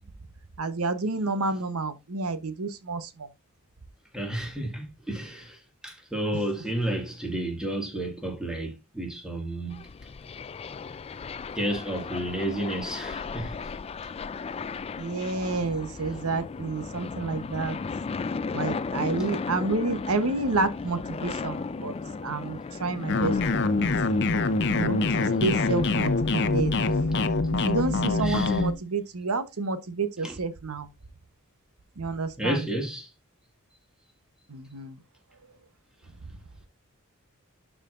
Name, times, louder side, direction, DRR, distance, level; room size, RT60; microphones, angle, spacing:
voice 1, 0.6-3.3 15.0-17.8 18.5-21.9 22.2-23.4 23.7-23.8 24.7-26.9 27.6-30.9 32.0-32.7 34.5-35.0, right 3 dB, 80° right, 1.0 m, -29 dB
voice 2, 4.1-9.8 11.6-13.6 25.9-26.5 28.2-28.6 30.2-30.4 32.4-33.1, right 1 dB, 5° right, 2.0 m, -32 dB
sound 1, 9.7-27.9, left 4 dB, 30° left, 0.3 m, -36 dB
sound 2, 23.1-28.7, left 3 dB, 55° left, 0.7 m, -24 dB
12.0 x 4.9 x 2.5 m
head